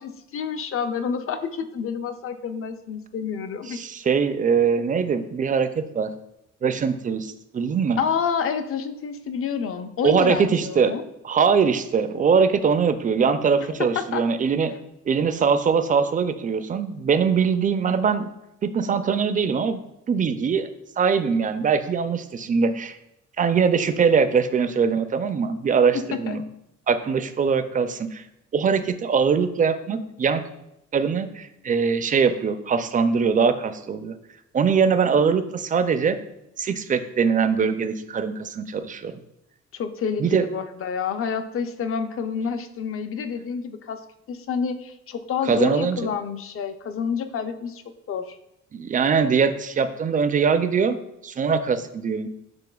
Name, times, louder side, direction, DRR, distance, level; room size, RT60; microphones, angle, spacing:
voice 1, 0.0-3.8 8.0-11.0 13.8-14.3 25.9-26.4 39.7-44.0 44.3-47.8 48.1-48.4, left 6 dB, 45° left, 9 dB, 0.5 m, -28 dB
voice 2, 3.7-6.1 6.6-8.0 10.0-10.9 11.2-14.7 15.1-18.3 18.6-19.8 20.1-20.7 21.0-23.0 23.4-26.4 26.9-28.2 28.5-30.4 30.9-34.1 34.5-36.2 36.6-39.1 40.2-40.5 45.4-46.0 48.7-51.0 51.2-52.3, right 6 dB, 30° right, 11 dB, 0.3 m, -22 dB
6.8 x 3.2 x 2.3 m, 0.84 s
cardioid pair, 90°, 30 cm